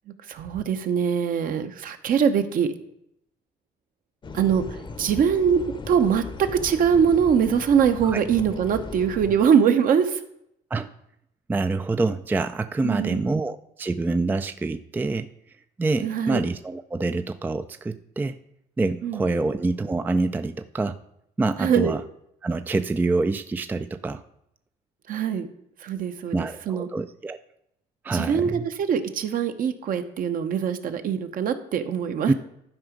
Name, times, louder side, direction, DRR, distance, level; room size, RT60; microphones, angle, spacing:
voice 1, 0.3-2.7 4.3-5.6 5.9-10.2 12.8-13.3 16.0-16.4 19.0-19.2 21.6-22.0 25.1-25.5 25.8-26.9 28.1-32.3, right 7 dB, 55° right, 8 dB, 0.9 m, -23 dB
sound 1, 4.2-9.5, left 3 dB, 30° left, 0.8 m, -38 dB
voice 2, 11.5-15.3 15.8-18.4 18.8-21.0 21.4-22.0 22.4-24.2 26.3-27.4 28.0-28.7 32.3-32.4, right 3 dB, 10° right, 10 dB, 0.3 m, -26 dB
11.5 x 4.9 x 5.1 m, 0.76 s
cardioid pair, 110°, 17 cm